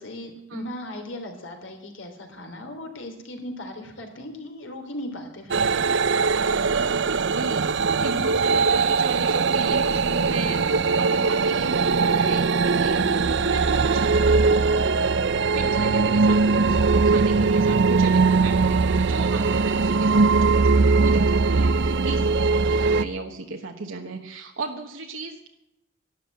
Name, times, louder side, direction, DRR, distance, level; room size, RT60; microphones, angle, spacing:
voice 1, 0.0-5.8 15.8-16.0, left 1 dB, 65° left, 4 dB, 3.2 m, -37 dB
sound 1, 5.5-23.0, right 4 dB, 60° right, 0.6 m, -20 dB
voice 2, 6.6-15.0 15.5-25.5, right 2 dB, 80° right, 1 dB, 1.3 m, -35 dB
12.5 x 12.0 x 8.4 m, 0.88 s
head